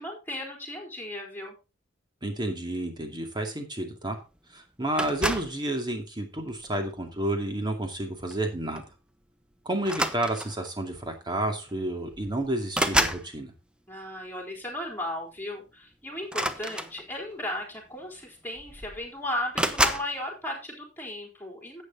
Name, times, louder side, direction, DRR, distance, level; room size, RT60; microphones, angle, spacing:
voice 1, 0.0-1.6 13.9-21.8, left 1 dB, 10° left, 0 dB, 4.1 m, -35 dB
voice 2, 2.2-4.2 4.5-8.8 9.6-13.5, right 1 dB, 25° right, 4 dB, 2.4 m, -30 dB
sound 1, 5.0-5.6 6.5-6.8 8.3-8.5 8.7-8.9 9.8-10.7 11.7-11.8 12.1-13.3 16.2-17.3 18.2-18.3 18.6-19.1 19.5-20.1, right 1 dB, 5° right, 0.9 m, -28 dB
11.5 x 8.4 x 3.9 m, 0.29 s
head